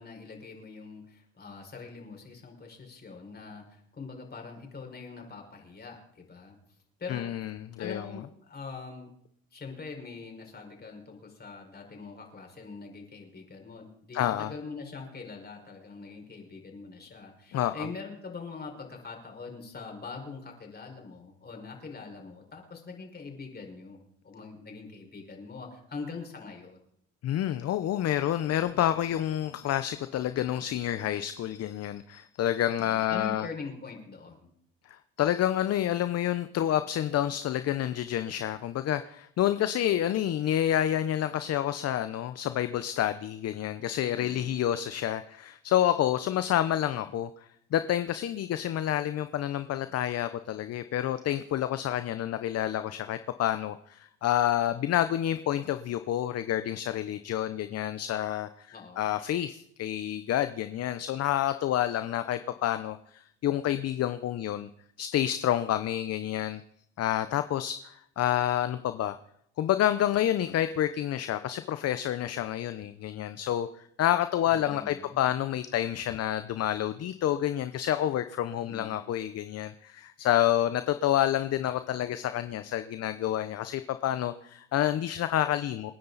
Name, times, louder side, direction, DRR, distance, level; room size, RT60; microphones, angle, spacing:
voice 1, 0.0-6.6 7.0-7.3 7.8-9.1 9.5-24.0 24.2-26.8 32.7-34.5 44.0-44.5 58.7-59.2 74.5-75.2 78.6-79.0, left 4 dB, 30° left, 2 dB, 5.5 m, -43 dB
voice 2, 7.1-8.0 14.1-14.5 17.5-17.9 27.2-33.5 34.9-64.7 65.0-66.6 67.0-69.1 69.6-85.9, left 11 dB, 50° left, 11 dB, 0.9 m, -29 dB
28.5 x 10.5 x 4.2 m, 0.71 s
supercardioid pair, 80°, 32 cm